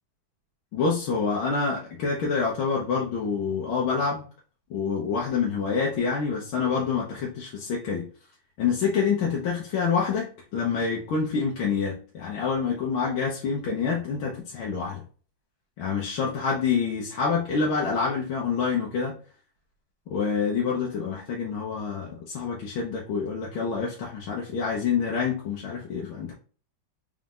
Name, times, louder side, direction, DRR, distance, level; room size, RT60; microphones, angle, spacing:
voice 1, 0.7-4.2 4.7-8.1 8.6-15.0 15.8-19.2 20.1-26.3, left 5 dB, 80° left, -4 dB, 1.8 m, -27 dB
4.2 x 3.7 x 2.5 m, 0.39 s
omnidirectional pair, 2.2 m